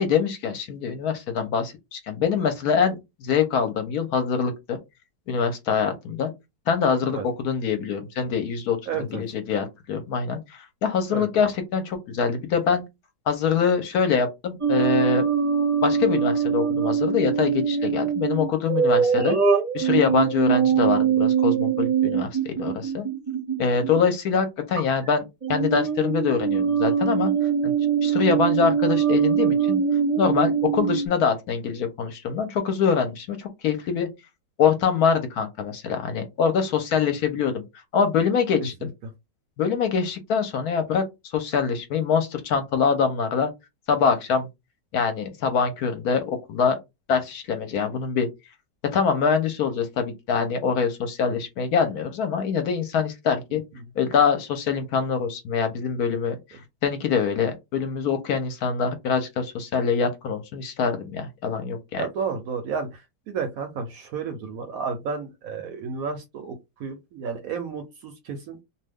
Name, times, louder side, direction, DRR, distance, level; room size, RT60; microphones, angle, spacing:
voice 1, 0.0-4.8 5.3-6.3 6.7-12.8 13.3-15.2 15.8-19.4 19.7-23.0 23.6-25.2 25.5-27.3 27.6-27.7 28.0-29.8 30.2-34.1 34.6-37.6 37.9-38.9 39.6-41.0 41.3-43.5 43.9-44.5 44.9-46.8 47.1-48.3 48.9-53.6 54.0-56.4 56.8-62.1, left 6 dB, 70° left, 1.0 m, -24 dB
voice 2, 8.9-9.2 11.1-11.3 39.0-39.1 53.8-53.9 62.0-68.6, right 5 dB, 70° right, 0.9 m, -32 dB
sound 1, 14.6-24.0 24.8-25.1 25.4-31.1, right 7 dB, 35° right, 0.5 m, -22 dB
2.7 x 2.2 x 3.4 m
omnidirectional pair, 1.9 m